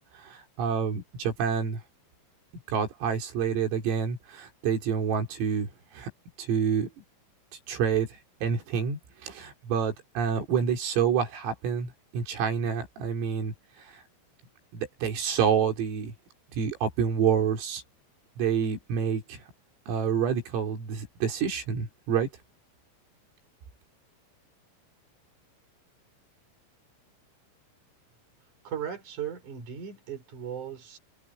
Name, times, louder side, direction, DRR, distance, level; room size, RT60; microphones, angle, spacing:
voice 1, 0.2-1.8 2.7-5.7 5.9-6.1 6.4-6.9 7.7-8.1 8.4-14.0 14.7-16.1 16.6-17.8 18.4-19.4 19.9-22.3, right 7 dB, 85° right, 6.9 m, -28 dB
voice 2, 28.6-31.0, right 8 dB, 40° right, 6.3 m, -37 dB
omnidirectional pair, 5.8 m